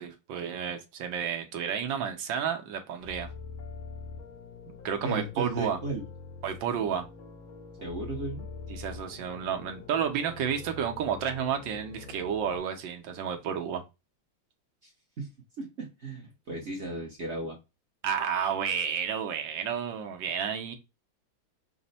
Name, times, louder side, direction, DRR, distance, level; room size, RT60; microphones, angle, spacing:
voice 1, 0.0-3.3 4.8-5.8 6.4-7.1 8.7-13.8 18.0-20.7, right 8 dB, 75° right, 1.3 m, -31 dB
sound 1, 3.0-12.6, left 4 dB, 90° left, 1.6 m, -44 dB
voice 2, 5.0-6.0 7.8-8.5 14.8-14.9 15.2-15.3 15.6-17.6, right 2 dB, 50° right, 0.8 m, -35 dB
4.2 x 2.1 x 4.0 m
omnidirectional pair, 2.2 m